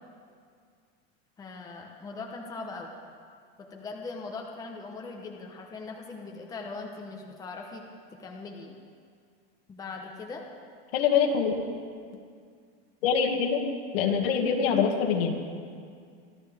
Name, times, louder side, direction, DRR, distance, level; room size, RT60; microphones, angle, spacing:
voice 1, 1.4-2.9 3.6-7.8 8.2-8.8 9.7-10.5, left 3 dB, 10° left, 1 dB, 0.9 m, -40 dB
voice 2, 10.9-11.5 13.0-13.6 13.9-15.4, left 6 dB, 70° left, 2 dB, 2.2 m, -24 dB
25.0 x 12.5 x 3.6 m, 2.1 s
supercardioid pair, 170°, 30 cm